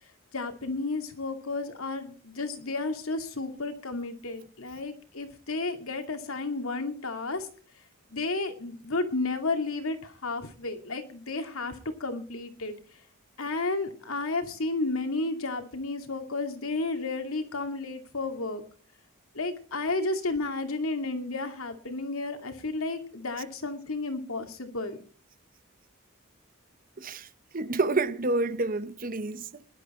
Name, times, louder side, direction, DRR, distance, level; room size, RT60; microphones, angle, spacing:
voice 1, 0.3-7.5 8.1-12.8 13.4-18.6 19.3-25.0, left 3 dB, 85° left, 2.5 m, -32 dB
voice 2, 27.0-27.3 27.5-29.6, right 3 dB, 40° right, 0.9 m, -28 dB
19.0 x 11.5 x 4.3 m
head